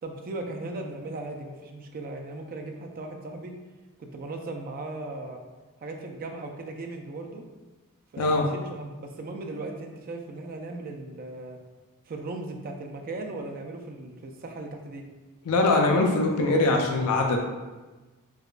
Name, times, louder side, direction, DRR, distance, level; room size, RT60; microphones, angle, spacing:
voice 1, 0.0-3.5 4.0-5.4 5.8-7.4 8.1-11.6 12.1-15.0, right 2 dB, 40° right, 3 dB, 0.4 m, -37 dB
voice 2, 15.5-17.4, left 2 dB, 75° left, 2 dB, 0.4 m, -22 dB
4.8 x 2.2 x 2.4 m, 1.2 s
head